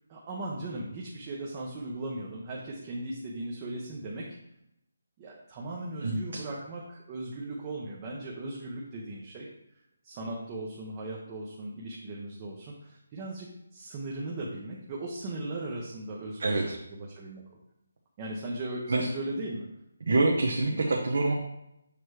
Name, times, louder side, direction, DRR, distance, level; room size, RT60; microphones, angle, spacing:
voice 1, 0.1-4.3 5.2-9.5 10.0-17.4 18.2-19.7, right 2 dB, 20° right, -3 dB, 0.8 m, -38 dB
voice 2, 16.4-16.8 18.9-19.1 20.1-21.3, right 2 dB, 60° right, -1 dB, 0.9 m, -25 dB
6.7 x 3.0 x 4.7 m, 0.83 s
hypercardioid pair, 170°, 0 cm